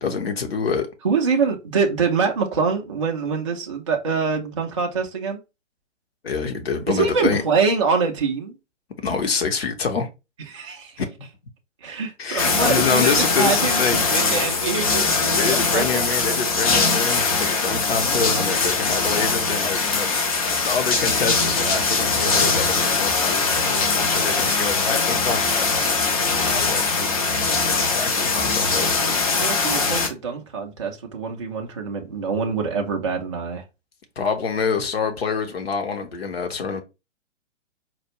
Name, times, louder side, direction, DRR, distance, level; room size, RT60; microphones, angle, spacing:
voice 1, 0.0-0.9 6.2-7.4 9.0-10.1 11.0-11.1 12.2-14.0 15.4-20.2 20.5-27.2 27.6-28.9 34.2-36.8, left 5 dB, 55° left, 0.9 m, -26 dB
voice 2, 1.0-5.4 6.9-8.6 10.5-11.0 11.8-16.0 29.4-33.6, right 5 dB, 25° right, 0.4 m, -24 dB
sound 1, 12.4-30.1, left 4 dB, 30° left, 0.5 m, -21 dB
4.2 x 2.3 x 2.9 m
figure-of-eight pair, 125°, 37 cm